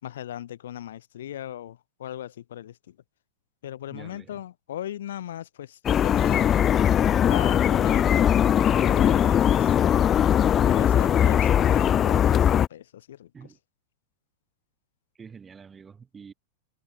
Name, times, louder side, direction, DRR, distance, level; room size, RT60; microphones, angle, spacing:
voice 1, 0.0-3.0 3.6-6.5 7.2-8.2 8.5-9.7 10.6-13.3, left 11 dB, 60° left, 6.4 m, -38 dB
voice 2, 3.9-4.4 13.3-13.6 15.1-16.3, right 6 dB, 20° right, 5.0 m, -46 dB
sound 1, 5.9-12.7, left 9 dB, 25° left, 0.9 m, -20 dB
figure-of-eight pair, 90°, 0 cm